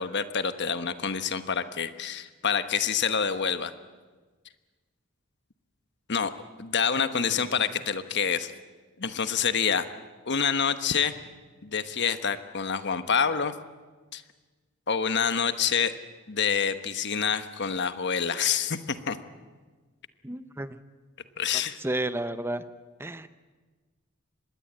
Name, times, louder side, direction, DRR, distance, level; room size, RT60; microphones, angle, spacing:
voice 1, 0.0-3.7 6.1-6.3 6.6-8.5 9.0-9.8 10.3-11.1 11.6-13.5 14.1-14.2 14.9-15.9 16.3-19.2 21.4-21.8, left 7 dB, 55° left, 10 dB, 1.3 m, -27 dB
voice 2, 7.0-7.4 20.2-20.8 21.8-22.6 23.0-23.3, right 1 dB, 10° right, 12 dB, 0.7 m, -32 dB
25.0 x 20.5 x 8.8 m, 1.4 s
head